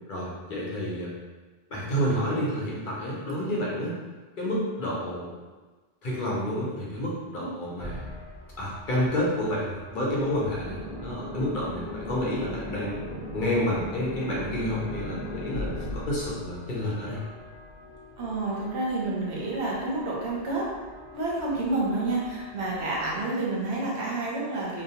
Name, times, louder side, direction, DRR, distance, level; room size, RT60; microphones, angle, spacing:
voice 1, 0.1-1.1 1.7-4.0 4.4-5.4 6.0-8.1 8.6-13.0 13.3-15.7 15.9-17.2, equal, 55° left, -5 dB, 0.8 m, -29 dB
sound 1, 7.7-23.2, left 2 dB, 50° right, 0.6 m, -45 dB
sound 2, 10.3-15.9, left 1 dB, 10° right, 0.8 m, -37 dB
Bowed string instrument, 13.7-18.3, right 1 dB, 85° left, 1.0 m, -45 dB
voice 2, 18.2-20.7 21.1-24.8, right 2 dB, 90° right, -4 dB, 1.0 m, -29 dB
2.9 x 2.0 x 2.8 m, 1.3 s
omnidirectional pair, 1.1 m